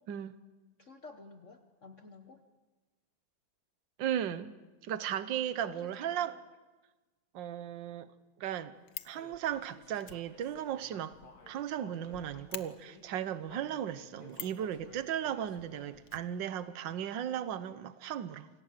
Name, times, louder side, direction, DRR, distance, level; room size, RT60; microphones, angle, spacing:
voice 1, 0.8-2.4 5.6-6.4, left 3 dB, 40° left, 1.4 m, -52 dB
voice 2, 4.0-4.5 4.8-6.4 7.3-8.1 8.4-8.8 9.1-11.2 11.5-18.5, right 10 dB, 65° right, 1.7 m, -36 dB
Fire, 8.5-9.2 10.0-11.8 12.0-12.1 12.5-12.7 14.3-14.7 16.1-17.0 17.2-17.3 17.5-17.6, left 9 dB, 60° left, 1.5 m, -45 dB
Human voice, 9.1-13.0 13.5-16.2, left 3 dB, 85° left, 3.7 m, -57 dB
28.5 x 26.0 x 7.5 m
omnidirectional pair, 2.2 m